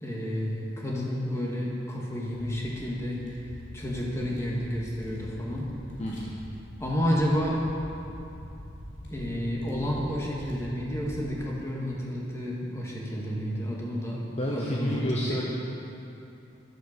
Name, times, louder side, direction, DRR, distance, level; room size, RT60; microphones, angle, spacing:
voice 1, 0.0-3.4 3.7-5.7 6.8-7.6 9.1-14.2 14.5-15.0 15.3-15.4, equal, 15° left, -4 dB, 2.0 m, -30 dB
sound 1, 2.5-11.2, equal, 85° left, 3.2 m, -44 dB
voice 2, 6.0-6.4 14.4-15.4, equal, 35° left, -3 dB, 1.0 m, -30 dB
12.0 x 8.2 x 6.7 m, 2.8 s
head